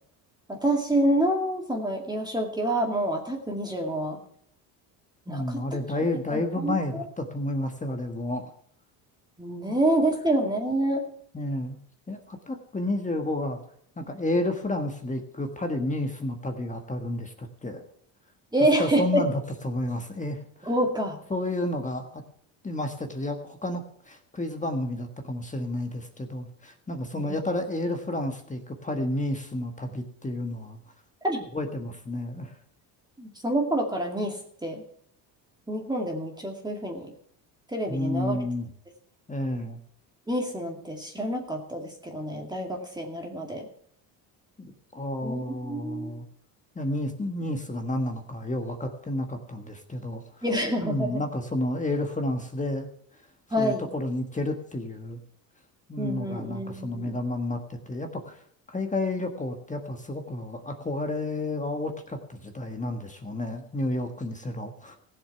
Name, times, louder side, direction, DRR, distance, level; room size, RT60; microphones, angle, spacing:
voice 1, 0.5-4.2 5.3-5.6 6.3-7.0 9.4-11.1 18.5-19.2 20.6-21.2 27.1-27.3 31.2-31.4 33.2-34.8 35.7-37.1 37.7-38.4 40.3-43.7 45.2-46.1 50.4-51.2 53.5-53.9 56.0-57.2, right 1 dB, 10° right, 1 dB, 2.2 m, -27 dB
voice 2, 5.3-8.5 9.7-9.8 11.3-11.8 12.1-13.6 14.0-17.8 18.8-20.7 21.3-22.2 22.6-30.8 31.5-32.6 37.9-38.7 39.3-39.8 44.6-46.3 46.7-50.2 50.8-52.9 53.6-55.2 55.9-58.4 58.7-65.0, left 1 dB, 15° left, 5 dB, 1.4 m, -31 dB
15.5 x 7.4 x 5.8 m, 0.65 s
supercardioid pair, 95°, 44 cm